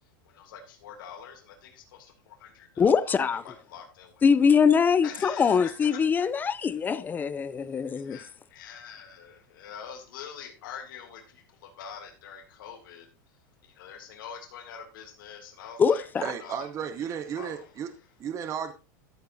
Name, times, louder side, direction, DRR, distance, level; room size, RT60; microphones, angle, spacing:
voice 1, 0.2-3.0 3.4-4.2 5.0-6.3 6.6-6.8 7.6-13.1 13.6-18.1, left 7 dB, 80° left, 2.7 m, -45 dB
voice 2, 2.8-3.4 4.2-8.2 15.8-16.2, left 6 dB, 15° left, 0.4 m, -23 dB
voice 3, 16.2-17.9 18.2-18.7, right 8 dB, 30° right, 0.7 m, -33 dB
13.5 x 7.8 x 2.7 m
supercardioid pair, 140°, 11 cm